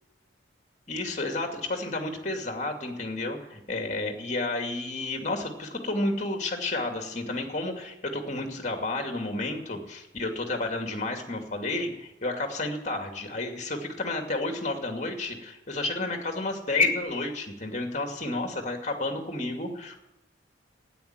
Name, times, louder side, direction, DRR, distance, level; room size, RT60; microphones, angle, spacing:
voice 1, 0.9-20.0, left 2 dB, 40° left, 3 dB, 2.5 m, -31 dB
13.0 x 10.0 x 9.2 m, 0.89 s
head